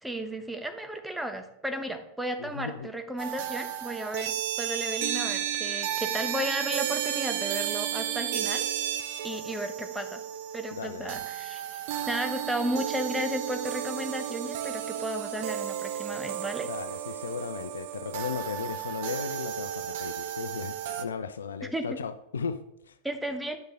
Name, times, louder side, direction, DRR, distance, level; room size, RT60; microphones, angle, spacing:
voice 1, 0.0-8.7 9.2-10.2 10.5-16.7 21.7-21.8 23.0-23.6, right 1 dB, 5° right, 1.0 m, -34 dB
voice 2, 2.4-2.9 10.7-11.2 16.6-23.0, left 6 dB, 70° left, 0.4 m, -36 dB
sound 1, 3.2-21.0, right 10 dB, 50° right, 0.6 m, -33 dB
9.6 x 6.5 x 3.6 m
figure-of-eight pair, 90°, 0 cm